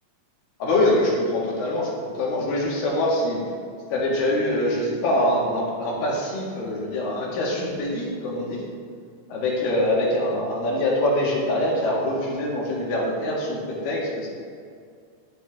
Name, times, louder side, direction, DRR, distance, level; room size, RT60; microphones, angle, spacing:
voice 1, 0.6-3.4 3.9-8.6 9.3-14.3, left 1 dB, 85° left, -3 dB, 3.0 m, -24 dB
10.5 x 6.8 x 2.4 m, 2.2 s
omnidirectional pair, 3.9 m